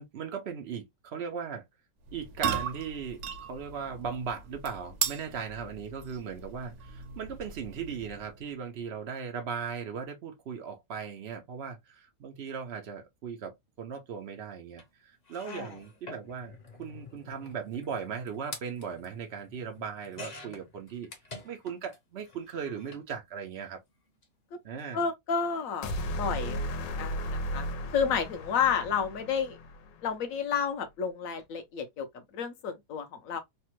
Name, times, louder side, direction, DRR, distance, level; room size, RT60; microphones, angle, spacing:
voice 1, 0.0-1.6 2.1-21.1 21.4-23.8 24.6-25.1, right 6 dB, 85° right, 0.5 m, -38 dB
sound 1, 2.0-8.4, right 7 dB, 65° right, 1.0 m, -37 dB
sound 2, 14.8-14.9 15.2-22.0 22.2-23.1 24.1-24.2 24.5-24.6, left 3 dB, 45° left, 0.5 m, -48 dB
voice 2, 24.9-29.6 30.0-33.4, left 6 dB, 65° left, 0.8 m, -31 dB
sound 3, 25.8-30.1, equal, 85° left, 1.3 m, -35 dB
3.3 x 2.1 x 2.9 m
omnidirectional pair, 1.9 m